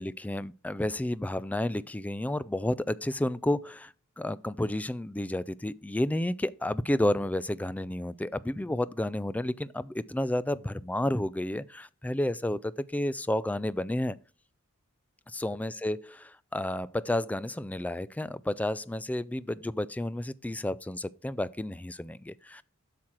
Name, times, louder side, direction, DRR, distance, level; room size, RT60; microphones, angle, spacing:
voice 1, 0.0-14.2 15.3-22.6, left 1 dB, 5° left, 0.3 m, -31 dB
8.6 x 6.1 x 4.3 m
head